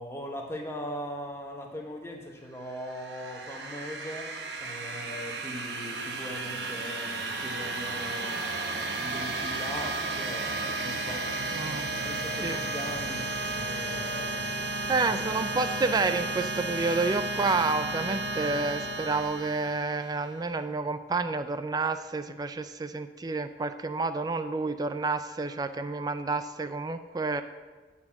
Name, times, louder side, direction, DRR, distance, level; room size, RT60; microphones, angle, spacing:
voice 1, 0.0-4.3 4.6-11.3 12.0-13.4 13.6-14.7 15.0-15.4, equal, 15° left, 1 dB, 1.1 m, -40 dB
sound 1, 2.7-20.3, right 2 dB, 75° right, 0.9 m, -33 dB
voice 2, 11.5-11.9 12.4-12.6 13.7-14.2 14.9-27.4, right 3 dB, 20° right, 10 dB, 0.3 m, -30 dB
9.7 x 4.2 x 7.1 m, 1.3 s
head